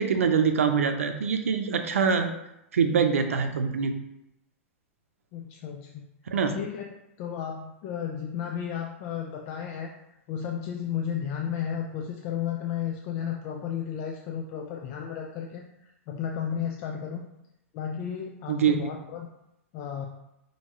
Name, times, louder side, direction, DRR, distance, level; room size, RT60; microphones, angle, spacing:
voice 1, 0.0-2.3 2.7-3.9 6.3-6.5 18.5-18.8, right 6 dB, 85° right, 7 dB, 0.5 m, -24 dB
voice 2, 5.3-6.1 6.5-6.9 7.2-9.9 10.3-17.3 17.7-19.3 19.7-20.1, left 8 dB, 45° left, 2 dB, 0.5 m, -33 dB
5.5 x 2.8 x 3.0 m, 0.85 s
hypercardioid pair, 110°, 7 cm